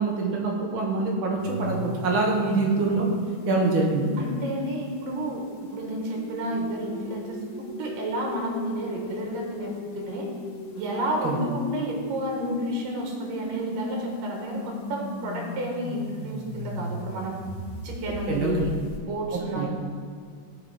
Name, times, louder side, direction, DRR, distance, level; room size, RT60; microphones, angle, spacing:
voice 1, 0.0-3.1 3.4-4.2 11.2-11.4 18.3-18.5 19.6-19.7, right 3 dB, 55° right, -2 dB, 1.5 m, -25 dB
sound 1, 1.4-19.0, left 1 dB, 75° left, 2.8 m, -37 dB
voice 2, 4.2-10.3 10.7-17.4 17.8-18.7 19.1-19.7, right 1 dB, 85° right, 0 dB, 2.9 m, -31 dB
14.0 x 4.9 x 4.8 m, 2.2 s
omnidirectional pair, 3.8 m